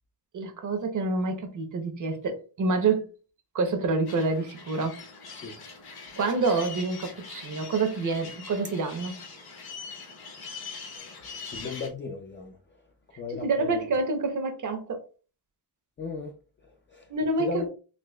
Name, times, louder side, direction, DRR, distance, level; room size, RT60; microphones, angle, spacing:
voice 1, 0.3-3.1 3.5-5.0 6.2-9.2 13.4-15.0 17.1-17.7, right 3 dB, 50° right, 0.8 m, -27 dB
sound 1, 4.1-11.9, left 4 dB, 65° left, 1.0 m, -42 dB
voice 2, 11.5-12.6 13.1-13.8 16.0-16.3 16.9-17.1 17.4-17.7, left 4 dB, 30° left, 0.4 m, -35 dB
4.0 x 2.7 x 2.2 m
wide cardioid pair, 120°, 41 cm